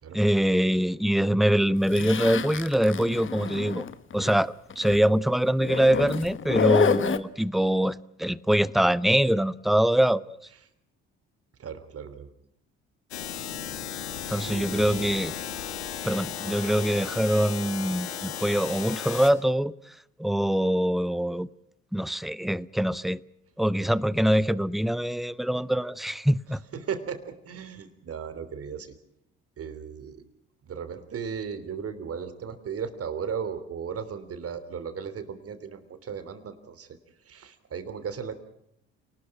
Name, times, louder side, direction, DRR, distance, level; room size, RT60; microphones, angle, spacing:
voice 1, 0.1-3.9 4.1-10.4 14.3-15.3 16.0-19.7 20.2-21.5 21.9-23.2 23.6-26.6, right 1 dB, ahead, 0.8 m, -24 dB
Zipper (clothing), 1.9-4.4 4.7-5.0 5.6-7.2, left 7 dB, 40° left, 1.4 m, -28 dB
voice 2, 11.6-12.3 14.5-15.1 16.4-16.6 26.7-28.9 29.6-30.2 30.6-36.9 37.2-38.3, right 7 dB, 45° right, 3.3 m, -36 dB
sound 1, 13.1-19.3, left 9 dB, 85° left, 1.8 m, -35 dB
29.0 x 19.5 x 5.9 m
hypercardioid pair, 55°, 32 cm